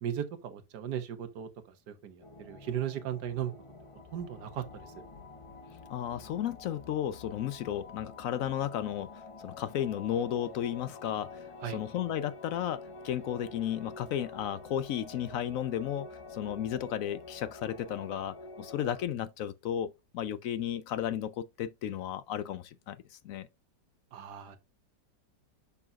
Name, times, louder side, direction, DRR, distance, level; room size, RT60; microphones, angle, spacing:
voice 1, 0.0-3.5 4.1-4.9 11.6-11.8 24.1-24.6, right 10 dB, 70° right, 1.6 m, -37 dB
sound 1, 2.2-19.0, left 3 dB, 25° left, 0.9 m, -48 dB
voice 2, 5.9-11.4 11.7-23.5, left 10 dB, 75° left, 0.8 m, -34 dB
7.0 x 5.7 x 2.4 m
omnidirectional pair, 1.9 m